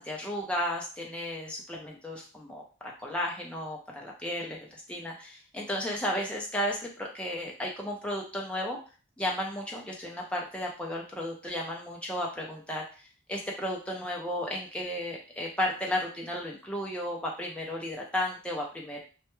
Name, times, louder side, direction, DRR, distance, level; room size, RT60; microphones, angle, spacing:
voice 1, 0.0-8.8 9.2-19.0, left 1 dB, 5° left, -2 dB, 0.4 m, -34 dB
2.2 x 2.1 x 2.9 m, 0.36 s
head